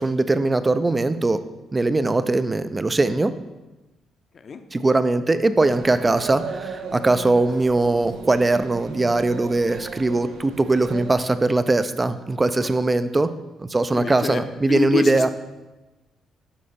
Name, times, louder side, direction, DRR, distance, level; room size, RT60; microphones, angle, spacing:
voice 1, 0.0-1.4 1.7-3.3 4.7-13.3 13.6-15.3, right 2 dB, 20° right, 12 dB, 0.5 m, -21 dB
sound 1, 5.6-11.1, right 5 dB, 80° right, 0.7 m, -36 dB
voice 2, 13.9-14.4 14.7-15.3, left 5 dB, 50° left, 8 dB, 0.7 m, -26 dB
11.5 x 4.3 x 4.3 m, 1.1 s
cardioid pair, 90°, 0 cm